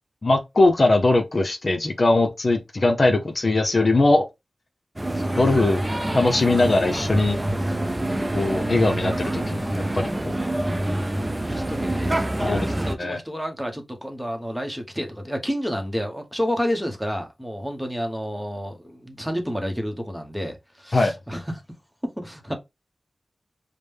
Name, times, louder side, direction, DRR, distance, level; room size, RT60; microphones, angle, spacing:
voice 1, 0.2-4.3 5.4-5.8 6.1-7.4 8.3-10.4 12.4-12.7 13.0-13.2 20.9-21.1, left 2 dB, 50° left, 0.8 m, -20 dB
sound 1, 5.0-12.9, right 1 dB, 25° right, 0.6 m, -26 dB
voice 2, 11.5-12.2 12.4-21.6 22.0-22.5, equal, 5° right, 1.0 m, -30 dB
5.0 x 2.2 x 3.5 m
wide cardioid pair, 65°, 0 cm